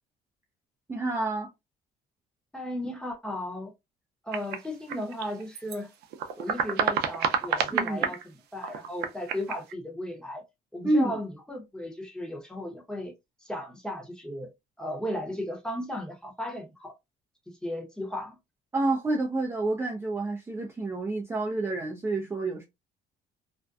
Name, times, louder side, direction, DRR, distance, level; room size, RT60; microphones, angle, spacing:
voice 1, 0.9-1.5 7.7-8.1 10.8-11.1 18.7-22.6, right 2 dB, 15° right, 0.5 m, -28 dB
voice 2, 2.5-3.7 4.2-5.9 6.4-10.4 10.7-13.1 13.4-14.5 14.8-16.9 17.5-18.4, left 1 dB, 5° left, 0.9 m, -35 dB
sound 1, 4.3-5.8 6.0-8.2 8.6-9.7, right 7 dB, 75° right, 0.5 m, -29 dB
2.5 x 2.1 x 2.3 m
cardioid pair, 110°, 17 cm